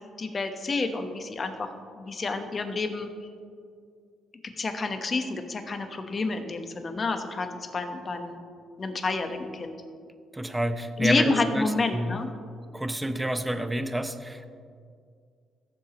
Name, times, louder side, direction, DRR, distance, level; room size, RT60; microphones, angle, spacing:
voice 1, 0.2-1.7 1.9-3.1 4.6-7.5 7.7-8.4 8.8-9.8 11.0-12.3, left 3 dB, 40° left, 6 dB, 1.1 m, -29 dB
voice 2, 10.3-12.1 12.7-14.5, right 1 dB, 10° right, 9 dB, 0.7 m, -29 dB
17.5 x 7.4 x 3.0 m, 2.3 s
cardioid pair, 90°, 0 cm